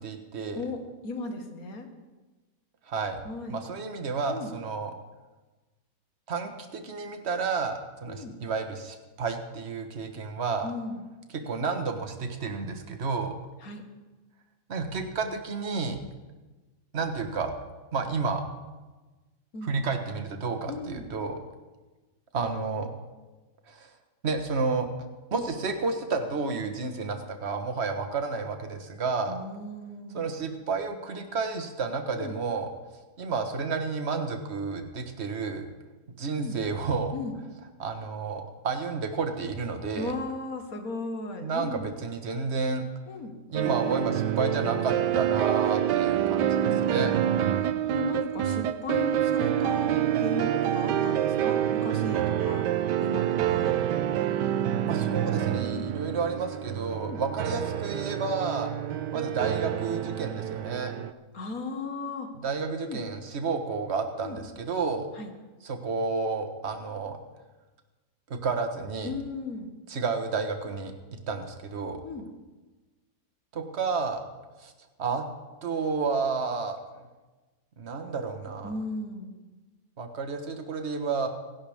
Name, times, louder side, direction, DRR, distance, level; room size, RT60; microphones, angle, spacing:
voice 1, 0.0-0.7 2.9-3.2 3.5-4.9 6.3-10.7 11.3-13.3 14.7-16.0 16.9-17.5 17.9-18.5 19.6-21.4 22.3-22.9 23.7-23.9 24.2-24.9 25.3-29.4 30.1-32.7 33.2-35.7 36.2-37.2 37.8-40.2 41.4-42.8 43.5-47.1 54.8-58.7 59.1-60.9 62.3-65.1 65.6-67.2 68.3-69.2 69.9-70.9 71.3-72.0 73.5-74.2 74.6-74.7 75.0-75.2 75.6-76.8 77.8-78.7 80.0-81.3, right 4 dB, 40° right, 6 dB, 1.6 m, -31 dB
voice 2, 0.6-1.9 3.2-3.6 4.3-4.5 8.1-8.4 10.6-11.0 13.6-13.8 19.5-19.7 20.7-21.1 29.3-30.3 32.2-32.4 36.4-36.6 37.1-37.3 39.9-41.8 43.1-43.3 46.6-46.8 47.9-52.7 53.0-53.8 55.6-55.9 57.0-57.2 61.3-62.3 62.8-63.0 64.2-64.4 65.2-65.3 69.0-69.7 72.0-72.3 78.6-79.4, left 3 dB, 55° left, 4 dB, 2.0 m, -36 dB
sound 1, 43.5-61.1, right 11 dB, 80° right, 1.3 m, -27 dB
26.5 x 11.5 x 3.6 m, 1.2 s
omnidirectional pair, 1.8 m